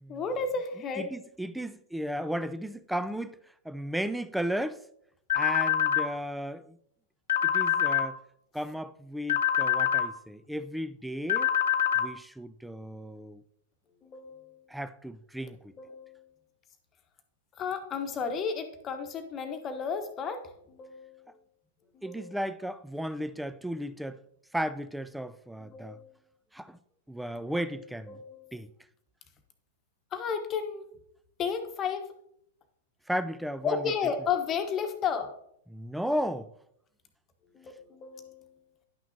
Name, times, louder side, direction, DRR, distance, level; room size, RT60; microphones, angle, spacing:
voice 1, 0.1-1.1 14.0-14.6 15.4-15.5 15.8-16.3 17.6-21.3 21.9-22.4 25.6-26.0 28.1-28.5 30.1-30.8 31.4-32.1 33.6-35.3 37.5-38.5, left 6 dB, 30° left, 1.0 m, -33 dB
voice 2, 1.1-3.4 3.7-4.8 5.3-6.6 7.4-8.2 8.5-11.5 12.0-13.4 14.7-15.6 22.0-24.2 24.5-26.0 26.5-26.8 27.1-28.2 28.5-28.7 33.1-33.8 35.7-36.5, equal, 5° right, 0.4 m, -34 dB
sound 1, 5.3-6.1 7.3-8.1 9.3-10.1 11.3-12.1, left 10 dB, 70° left, 0.9 m, -25 dB
10.5 x 6.1 x 2.7 m
hypercardioid pair, 105°, 0 cm